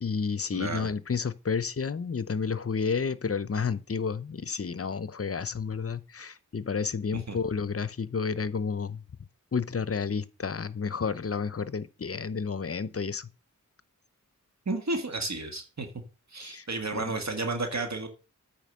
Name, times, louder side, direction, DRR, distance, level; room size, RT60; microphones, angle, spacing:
voice 1, 0.0-9.0 9.5-13.3 16.4-16.6 16.9-17.0, left 5 dB, 45° left, 0.7 m, -31 dB
voice 2, 0.5-0.9 7.1-7.4 14.6-15.9 16.3-18.1, right 2 dB, 55° right, 1.7 m, -32 dB
8.9 x 5.0 x 6.3 m
wide cardioid pair, 70°, 32 cm